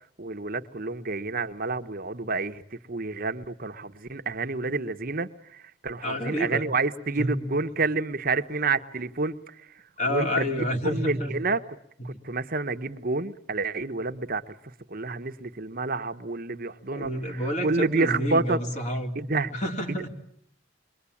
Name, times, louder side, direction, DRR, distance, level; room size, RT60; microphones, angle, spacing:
voice 1, 0.2-9.5 10.1-11.6 12.0-14.5 14.9-18.6 19.1-19.5, right 3 dB, 50° right, 1.1 m, -29 dB
voice 2, 6.0-6.7 7.2-7.4 10.0-11.3 12.1-12.2 16.7-19.2 19.5-20.1, equal, 40° left, 3.7 m, -29 dB
28.5 x 23.0 x 8.6 m
head